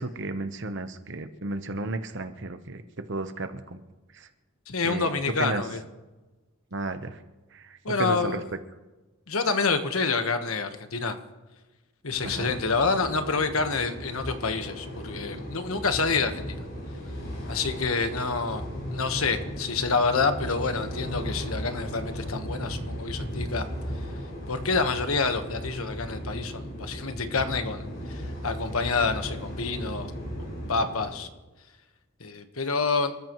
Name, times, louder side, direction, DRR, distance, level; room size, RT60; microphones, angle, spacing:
voice 1, 0.0-2.8 3.1-3.8 4.8-5.1 5.4-5.6 6.7-7.2 7.5-7.6 8.0-8.4 12.2-12.5, right 2 dB, 55° right, 9 dB, 1.0 m, -32 dB
voice 2, 4.7-5.8 7.8-8.4 9.3-11.2 12.0-16.6 17.4-18.6 18.9-23.6 24.5-30.1 30.7-31.3 32.2-33.1, left 4 dB, 75° left, 8 dB, 1.3 m, -28 dB
sound 1, 12.1-31.1, equal, 55° left, 7.2 m, -36 dB
28.0 x 14.0 x 3.1 m, 1.2 s
head